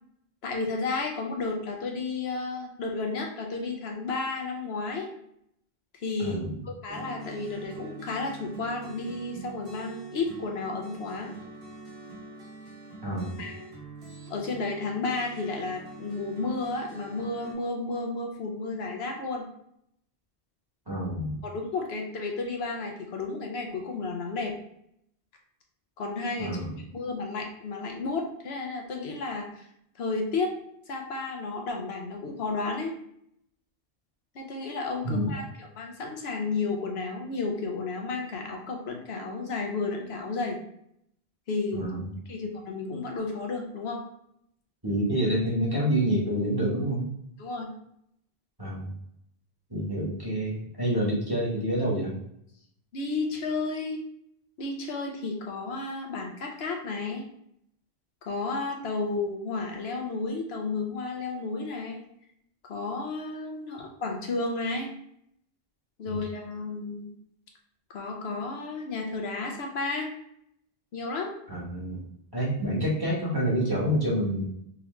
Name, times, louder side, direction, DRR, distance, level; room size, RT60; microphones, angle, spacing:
voice 1, 0.4-5.1 6.0-6.4 6.6-11.3 13.4-13.6 14.3-19.5 21.4-24.6 26.0-26.6 26.9-29.6 30.0-30.5 30.9-33.0 34.3-40.6 41.5-41.9 42.3-44.0 47.4-47.7 52.9-54.0 54.6-57.3 58.3-62.0 62.7-64.9 66.0-67.1 67.9-70.1 70.9-71.3, left 3 dB, 80° left, 2 dB, 1.0 m, -32 dB
voice 2, 6.2-6.6 13.0-13.4 20.9-21.4 26.4-26.7 35.0-35.4 41.7-42.1 44.8-47.1 48.6-48.9 49.7-52.1 66.1-66.2 71.5-72.0 72.3-74.4, equal, 20° right, -6 dB, 1.3 m, -27 dB
sound 1, 6.9-17.5, right 3 dB, 65° right, 1.3 m, -44 dB
3.7 x 3.0 x 3.1 m, 0.73 s
omnidirectional pair, 1.0 m